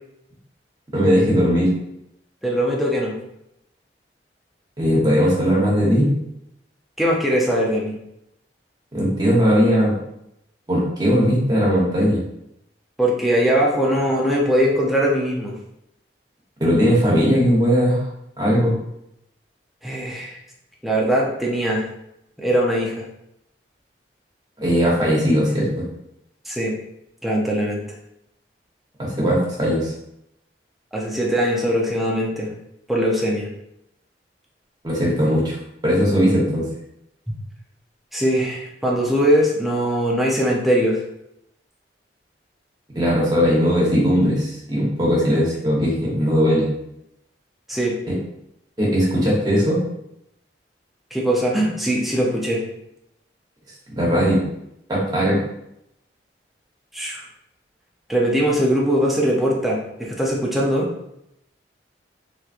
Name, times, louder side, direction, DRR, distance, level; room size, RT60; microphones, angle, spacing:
voice 1, 0.9-1.7 4.8-6.1 8.9-9.9 10.7-12.2 16.6-18.0 18.4-18.7 24.6-25.8 29.0-29.9 34.8-35.6 35.8-36.7 42.9-46.7 48.1-48.2 48.8-49.8 54.0-54.4 54.9-55.4, equal, 20° right, -5 dB, 1.0 m, -18 dB
voice 2, 2.4-3.2 7.0-7.9 13.0-15.5 19.8-20.4 20.8-21.8 22.4-23.0 26.5-26.7 27.2-27.8 30.9-32.5 32.9-33.5 38.1-41.0 47.7-48.0 51.1-52.6 56.9-57.2 58.1-60.9, equal, ahead, -4 dB, 0.6 m, -21 dB
3.4 x 3.0 x 2.5 m, 0.81 s
head